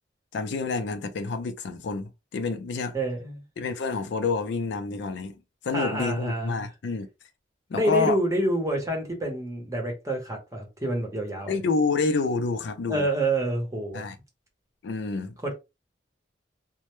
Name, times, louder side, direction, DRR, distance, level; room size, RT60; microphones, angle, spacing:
voice 1, 0.3-2.9 3.6-5.3 5.6-7.1 7.7-8.2 11.5-13.1 13.9-14.2 14.8-15.3, left 4 dB, 70° left, 0.4 m, -28 dB
voice 2, 2.9-3.4 5.7-6.6 7.7-11.5 12.9-14.0 15.4-15.5, right 1 dB, 15° right, 0.7 m, -27 dB
2.1 x 2.0 x 2.9 m
head